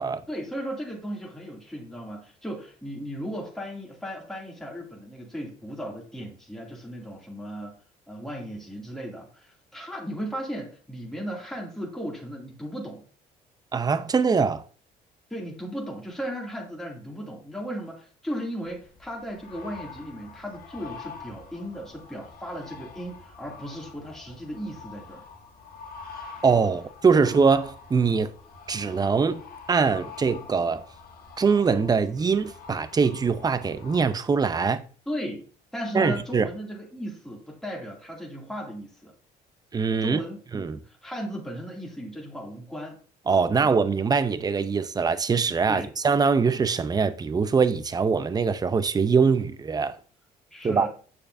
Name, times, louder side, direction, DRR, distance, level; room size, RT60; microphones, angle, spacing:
voice 1, 0.3-7.7 8.1-13.1 15.3-25.2 35.1-35.5 35.7-39.1 40.0-43.0 43.5-43.7 45.7-45.9 50.5-50.9, equal, ahead, 2.5 m, -36 dB
voice 2, 13.7-14.6 26.4-28.3 28.7-29.4 29.7-30.8 31.4-34.8 35.9-36.5 39.7-40.2 40.5-40.8 43.3-50.0 50.6-50.9, right 5 dB, 25° right, 0.6 m, -23 dB
sound 1, 18.7-34.1, left 4 dB, 60° left, 1.5 m, -46 dB
8.4 x 6.7 x 2.7 m
cardioid pair, 110°, 17 cm